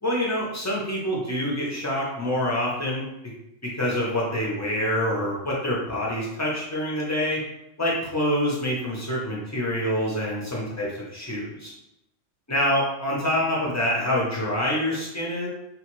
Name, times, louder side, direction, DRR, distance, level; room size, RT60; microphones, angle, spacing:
voice 1, 0.0-3.1 3.6-7.4 7.8-11.7 12.5-15.5, equal, 25° left, -4 dB, 0.3 m, -26 dB
2.9 x 2.4 x 3.0 m, 0.87 s
omnidirectional pair, 1.3 m